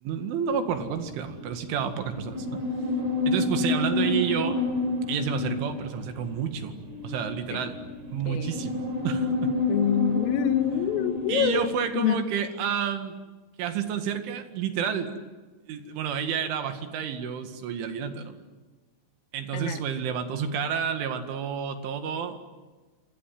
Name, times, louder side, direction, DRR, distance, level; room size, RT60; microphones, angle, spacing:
voice 1, 0.0-2.6 3.3-4.6 5.1-7.8 8.1-9.6 11.3-13.2 13.6-15.1 15.7-18.4 19.3-22.4, right 7 dB, 70° right, 7 dB, 4.3 m, -30 dB
sound 1, 0.7-11.7, left 2 dB, 50° right, 6.1 m, -30 dB
voice 2, 8.3-8.6 9.7-11.7 11.9-12.2 19.5-19.8, left 10 dB, 80° left, 9 dB, 4.0 m, -25 dB
28.0 x 26.5 x 7.8 m, 1.3 s
omnidirectional pair, 6.0 m